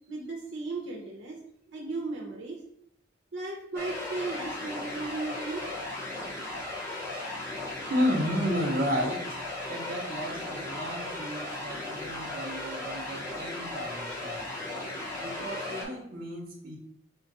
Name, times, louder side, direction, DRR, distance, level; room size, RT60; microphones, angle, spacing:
voice 1, 0.1-1.4 1.7-2.6 3.3-5.7, right 3 dB, 75° right, -2 dB, 0.7 m, -36 dB
sound 1, 3.7-15.8, left 2 dB, 15° left, 1.0 m, -36 dB
voice 2, 7.9-14.5 15.2-16.8, equal, 45° right, -1 dB, 1.1 m, -32 dB
4.4 x 2.4 x 4.0 m, 0.73 s
head